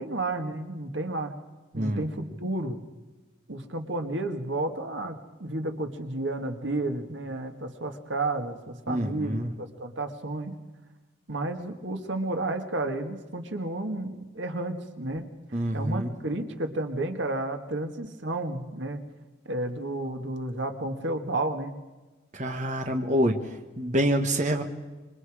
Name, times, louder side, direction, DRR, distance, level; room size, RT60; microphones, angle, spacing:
voice 1, 0.0-1.3 1.7-2.8 3.5-10.5 11.3-15.3 15.7-19.0 19.4-21.7, right 2 dB, 85° right, 6 dB, 1.9 m, -32 dB
voice 2, 1.7-2.1 8.9-9.5 15.5-16.1 22.3-23.4 23.8-24.6, equal, 40° right, 5 dB, 1.4 m, -26 dB
27.0 x 23.5 x 5.0 m, 1.2 s
head